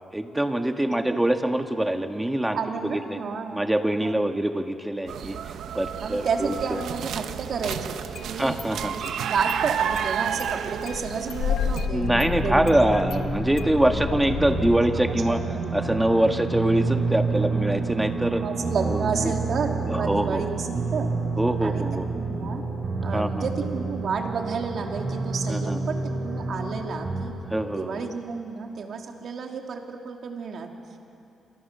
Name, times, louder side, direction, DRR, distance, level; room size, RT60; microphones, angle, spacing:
voice 1, 0.1-3.2 3.5-5.4 5.7-6.8 8.4-8.9 11.9-15.4 15.7-18.4 18.8-19.0 19.9-20.4 21.4-22.1 23.1-23.4 25.5-25.8 27.5-28.0, right 1 dB, 10° right, 5 dB, 1.7 m, -24 dB
voice 2, 2.5-4.3 6.0-7.9 8.2-8.5 8.9-12.1 12.4-12.9 14.4-15.7 18.3-21.2 21.6-22.6 23.0-27.3 27.7-30.7, right 5 dB, 60° right, 2 dB, 3.0 m, -31 dB
sound 1, 5.1-11.9, right 8 dB, 80° right, 1.1 m, -31 dB
Engine starting, 6.3-6.4 7.6-8.3 8.6-8.7 9.1-9.2 9.5-9.6 10.0-10.5 10.8-14.8, left 7 dB, 80° left, 1.2 m, -31 dB
sound 2, 12.0-27.3, right 3 dB, 40° right, 6.8 m, -29 dB
29.0 x 27.5 x 6.9 m, 2.8 s
cardioid pair, 110°, 0 cm